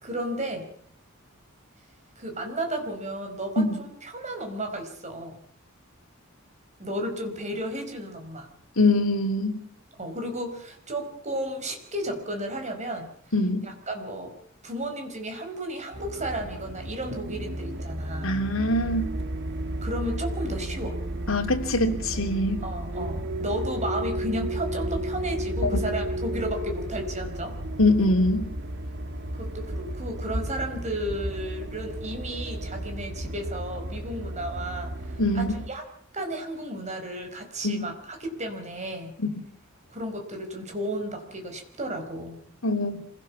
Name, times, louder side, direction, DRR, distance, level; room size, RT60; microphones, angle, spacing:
voice 1, 0.0-0.7 2.2-5.4 6.8-8.5 10.0-13.1 13.6-14.3 14.6-18.4 19.8-21.0 22.6-27.5 29.3-35.8 36.1-39.2 39.9-42.4, right 1 dB, 35° right, 4 dB, 4.8 m, -33 dB
voice 2, 8.8-9.5 13.3-13.7 18.2-19.1 21.3-22.6 25.7-25.8 27.8-28.4 35.2-35.5 37.6-37.8 42.6-43.0, left 2 dB, 70° left, 2 dB, 3.4 m, -23 dB
sound 1, 15.9-35.7, right 1 dB, 55° right, 1.6 m, -33 dB
26.5 x 17.0 x 7.2 m, 0.64 s
head